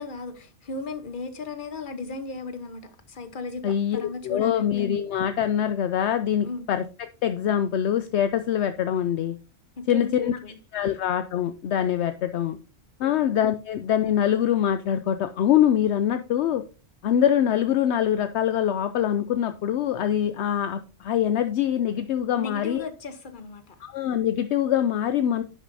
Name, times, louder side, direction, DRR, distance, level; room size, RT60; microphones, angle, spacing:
voice 1, 0.0-4.7 6.4-6.7 9.8-10.6 13.0-13.3 22.4-23.8, left 3 dB, 45° left, 1.1 m, -36 dB
voice 2, 3.6-6.8 7.2-9.4 9.9-10.4 10.7-12.6 13.0-16.6 17.0-22.8 23.8-25.4, left 10 dB, 70° left, 0.8 m, -24 dB
10.5 x 6.4 x 2.7 m
omnidirectional pair, 1.2 m